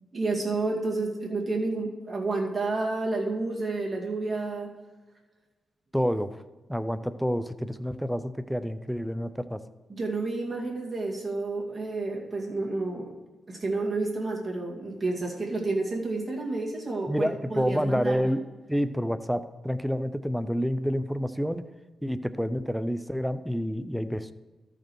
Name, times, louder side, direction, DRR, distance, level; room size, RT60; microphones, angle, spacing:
voice 1, 0.1-4.7 9.9-13.2 13.5-18.4, right 3 dB, 30° right, -2 dB, 2.3 m, -30 dB
voice 2, 5.9-6.4 6.7-9.6 17.1-18.4 18.7-21.6 22.0-24.3, equal, ahead, 12 dB, 0.5 m, -28 dB
13.5 x 5.1 x 4.7 m, 1.3 s
cardioid pair, 70°, 0 cm